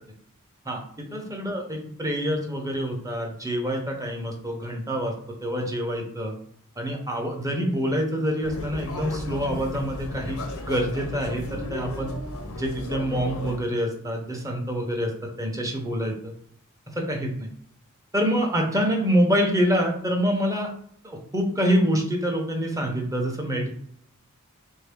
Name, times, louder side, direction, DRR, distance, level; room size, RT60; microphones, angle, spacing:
voice 1, 0.7-5.1 5.4-6.3 6.8-10.4 10.7-12.1 12.5-16.3 16.9-17.5 18.1-20.7 21.0-23.7, equal, 15° right, 2 dB, 0.7 m, -26 dB
sound 1, 8.4-13.6, left 1 dB, 65° left, 0.6 m, -35 dB
3.6 x 2.7 x 3.5 m, 0.63 s
head